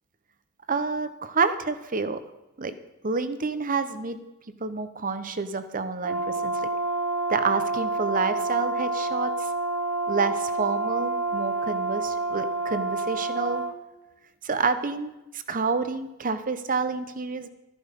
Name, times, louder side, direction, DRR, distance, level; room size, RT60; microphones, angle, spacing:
voice 1, 0.7-2.2 2.6-2.7 3.0-4.2 4.6-6.7 7.3-9.5 10.1-13.6 14.4-17.5, right 4 dB, 40° right, 11 dB, 0.9 m, -28 dB
Brass instrument, 6.0-13.8, right 3 dB, 75° right, 1.2 m, -28 dB
13.5 x 10.5 x 5.3 m, 0.99 s
head